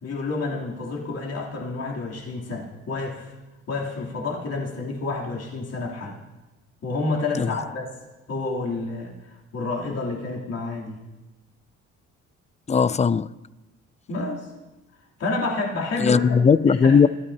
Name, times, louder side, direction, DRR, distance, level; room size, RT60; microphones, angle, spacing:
voice 1, 0.0-3.3 3.7-6.1 6.8-7.9 8.3-11.0 14.1-14.5 15.2-16.3 16.7-17.1, left 3 dB, 55° left, 3.2 m, -29 dB
voice 2, 12.7-13.3 16.0-17.1, left 6 dB, 25° left, 0.4 m, -18 dB
26.0 x 13.0 x 2.8 m
cardioid pair, 90°, 30 cm